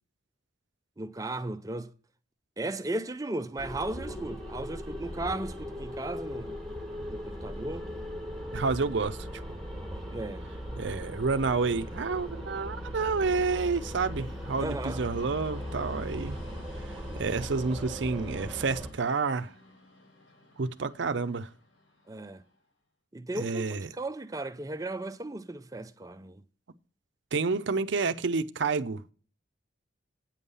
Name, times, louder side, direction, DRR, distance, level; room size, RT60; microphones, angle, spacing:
voice 1, 1.0-1.9 2.6-6.6 7.1-7.9 10.1-10.5 14.6-15.0 22.1-22.4 23.1-26.4, right 2 dB, 15° right, 0.4 m, -36 dB
sound 1, 3.6-18.9, equal, ahead, 1.5 m, -39 dB
Train, 4.1-22.6, left 1 dB, 90° left, 4.6 m, -55 dB
voice 2, 8.5-9.3 10.8-16.4 17.1-19.5 20.6-21.5 23.4-23.9 27.3-29.0, right 4 dB, 65° right, 0.6 m, -29 dB
9.1 x 5.5 x 6.8 m
head